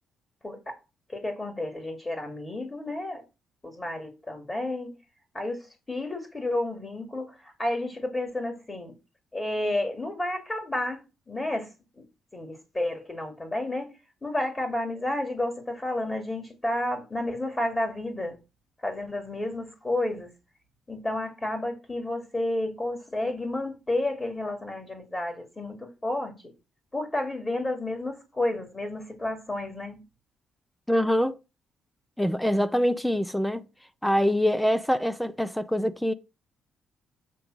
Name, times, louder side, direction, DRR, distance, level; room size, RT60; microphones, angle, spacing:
voice 1, 0.4-0.7 1.1-3.2 3.6-5.0 5.3-8.9 9.3-11.7 12.0-12.1 12.3-13.9 14.2-18.4 18.8-20.3 20.9-26.3 26.9-30.0, left 1 dB, 20° left, 2.3 m, -31 dB
voice 2, 30.9-31.4 32.2-33.6 34.0-36.1, equal, 5° left, 0.6 m, -24 dB
8.4 x 3.5 x 6.2 m
cardioid pair, 90°, 0 cm